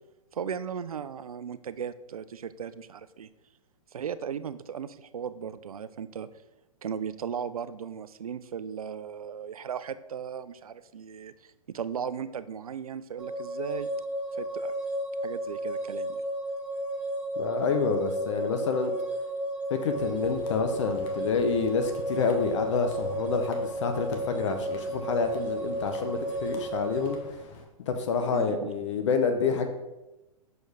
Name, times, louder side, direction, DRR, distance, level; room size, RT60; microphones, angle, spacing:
voice 1, 0.3-3.3 3.9-6.3 6.8-13.9 14.3-14.7 15.2-16.2 28.3-28.7, right 7 dB, 85° right, 14 dB, 0.4 m, -36 dB
sound 1, 13.2-27.2, right 1 dB, 5° right, 0.9 m, -33 dB
voice 2, 17.4-18.9 19.7-27.4 27.9-29.7, left 5 dB, 55° left, 7 dB, 0.7 m, -28 dB
sound 2, 19.9-27.6, left 3 dB, 35° left, 1.0 m, -49 dB
6.5 x 4.5 x 3.4 m, 1.0 s
hypercardioid pair, 120°, 18 cm